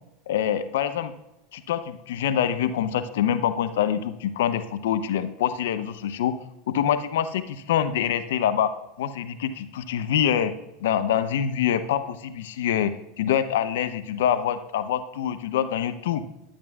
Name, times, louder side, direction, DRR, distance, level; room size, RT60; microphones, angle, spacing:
voice 1, 0.3-1.1 1.5-6.3 6.7-10.5 10.8-12.9 13.2-16.2, left 9 dB, 75° left, 12 dB, 0.6 m, -25 dB
11.0 x 10.5 x 2.4 m, 0.89 s
hypercardioid pair, 85°, 0 cm